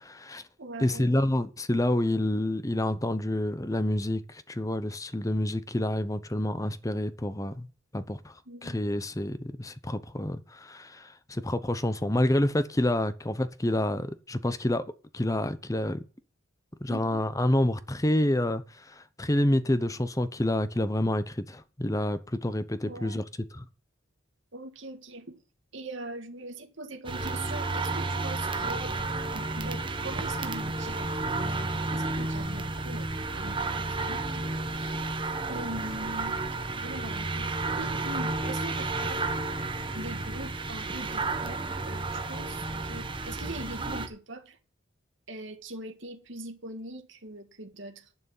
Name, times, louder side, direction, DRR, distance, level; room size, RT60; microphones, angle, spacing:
voice 1, 0.0-0.4 0.8-7.7 7.9-8.4 8.6-14.8 15.1-16.0 16.8-23.2 23.5-23.6, left 1 dB, 15° left, 0.8 m, -28 dB
voice 2, 0.6-1.1 8.4-8.8 16.9-17.2 22.8-23.2 24.5-25.4 25.7-29.0 29.3-35.1 35.5-36.4 36.7-37.5 37.8-39.3 39.9-44.6 45.3-48.1, right 2 dB, 60° right, 1.8 m, -42 dB
sound 1, 27.0-44.1, right 3 dB, 25° right, 1.2 m, -32 dB
11.0 x 6.2 x 7.2 m
head